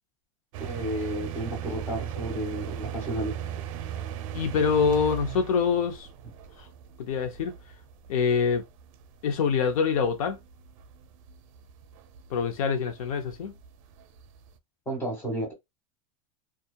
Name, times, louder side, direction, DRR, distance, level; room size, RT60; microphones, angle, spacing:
sound 1, 0.5-14.6, right 10 dB, 70° right, 0.4 m, -39 dB
voice 1, 0.6-3.4 14.8-15.5, right 1 dB, 15° left, 1.3 m, -32 dB
voice 2, 4.3-6.1 7.0-7.5 8.1-8.6 9.2-10.4 12.3-13.5, left 6 dB, 90° left, 0.7 m, -25 dB
2.8 x 2.4 x 2.2 m
supercardioid pair, 150°, 18 cm